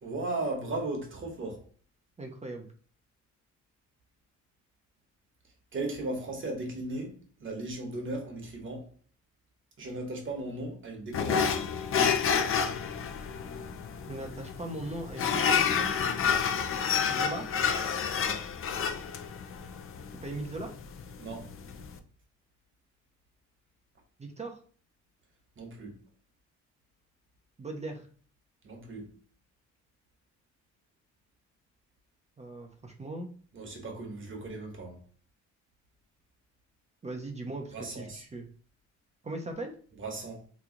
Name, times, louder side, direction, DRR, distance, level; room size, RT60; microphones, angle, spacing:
voice 1, 0.0-1.6 5.7-8.9 9.8-11.6 16.2-16.5 18.2-18.4 21.2-21.5 25.6-26.0 28.6-29.1 33.5-35.0 37.7-38.2 40.0-40.5, right 2 dB, 40° right, 1.2 m, -37 dB
voice 2, 2.2-2.7 14.1-15.9 17.1-17.5 20.2-20.7 24.2-24.6 27.6-28.1 32.4-33.3 37.0-38.5 39.2-39.7, right 2 dB, 20° right, 0.6 m, -39 dB
sound 1, 11.1-22.0, left 7 dB, 45° left, 0.5 m, -29 dB
3.0 x 2.3 x 3.8 m
cardioid pair, 90°, 30 cm